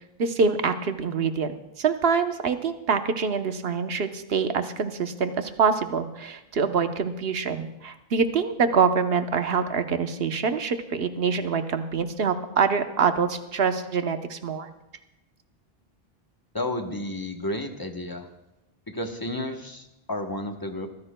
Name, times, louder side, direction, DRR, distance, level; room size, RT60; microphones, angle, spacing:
voice 1, 0.2-14.7, right 5 dB, 70° right, 8 dB, 1.1 m, -25 dB
voice 2, 16.5-18.3 18.9-20.9, left 1 dB, 20° left, 4 dB, 1.0 m, -32 dB
23.5 x 15.0 x 2.2 m, 0.94 s
omnidirectional pair, 1.1 m